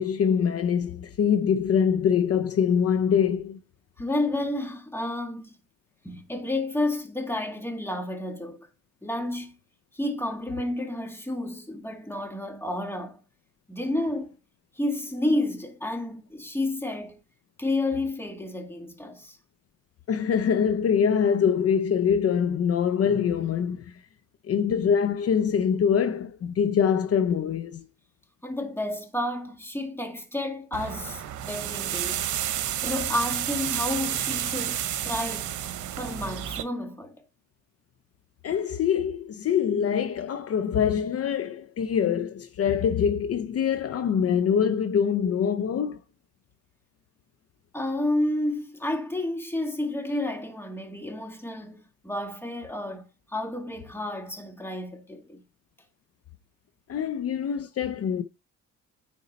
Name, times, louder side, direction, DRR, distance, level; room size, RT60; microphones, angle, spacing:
voice 1, 0.0-3.6 20.1-23.9 24.4-27.9 38.4-46.0 56.9-58.2, left 7 dB, 50° left, 0.7 m, -24 dB
voice 2, 4.0-5.6 6.0-8.7 9.0-9.5 9.9-13.2 13.7-14.4 14.8-17.2 17.6-19.4 28.4-32.3 32.8-35.5 36.0-37.2 47.7-53.1 53.3-55.4 57.0-57.1, left 1 dB, 10° left, 1.9 m, -30 dB
sound 1, 30.7-36.6, right 11 dB, 75° right, 1.0 m, -30 dB
9.4 x 4.5 x 4.1 m
cardioid pair, 90°, 30 cm